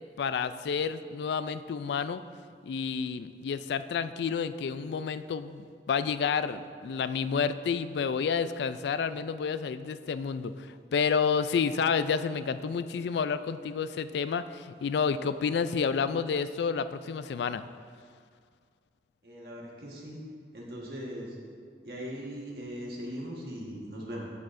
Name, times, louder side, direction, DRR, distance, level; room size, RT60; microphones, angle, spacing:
voice 1, 0.2-2.2 2.6-17.6, left 6 dB, 70° left, 12 dB, 0.3 m, -30 dB
voice 2, 19.2-20.2 20.5-21.4 21.8-24.3, equal, 55° right, -3 dB, 1.4 m, -39 dB
14.0 x 6.3 x 2.6 m, 2.1 s
head